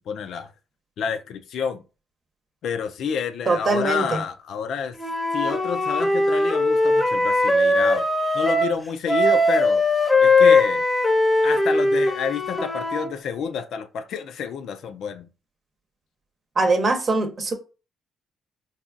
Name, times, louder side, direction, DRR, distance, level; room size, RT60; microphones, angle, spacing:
voice 1, 0.1-0.5 1.0-1.8 2.6-4.9 5.3-8.0 8.3-9.8 10.2-10.8 11.4-15.3, left 7 dB, 75° left, 0.4 m, -29 dB
voice 2, 3.5-4.2 16.6-17.5, right 3 dB, 45° right, 0.8 m, -22 dB
Wind instrument woodwind instrument, 5.0-8.7 9.1-13.1, left 2 dB, 10° left, 0.8 m, -20 dB
3.9 x 2.3 x 2.5 m
cardioid pair, 90°, 0 cm